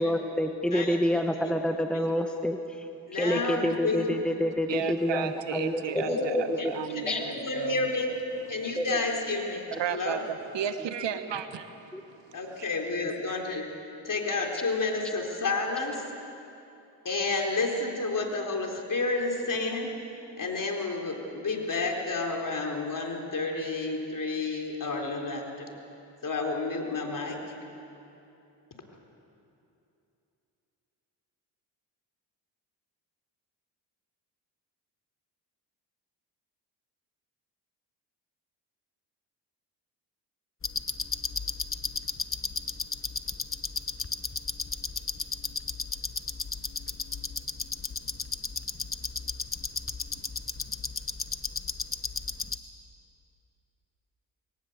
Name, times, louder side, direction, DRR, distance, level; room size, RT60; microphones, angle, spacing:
voice 1, 0.0-6.7 7.1-7.2 8.8-9.0 11.9-12.0, equal, ahead, 5 dB, 1.2 m, -28 dB
voice 2, 3.1-4.1 5.9-8.1 8.5-9.6 9.9-10.2 12.3-13.7 14.0-16.1 17.0-19.9 20.4-25.7 26.2-27.5, left 3 dB, 45° left, 2 dB, 4.0 m, -30 dB
voice 3, 4.7-7.8 8.5-8.6 9.7-12.7, right 9 dB, 70° right, 9 dB, 1.4 m, -34 dB
sound 1, 40.6-52.6, left 4 dB, 30° left, 1.3 m, -34 dB
21.5 x 18.5 x 8.1 m, 2.8 s
supercardioid pair, 55°, 45 cm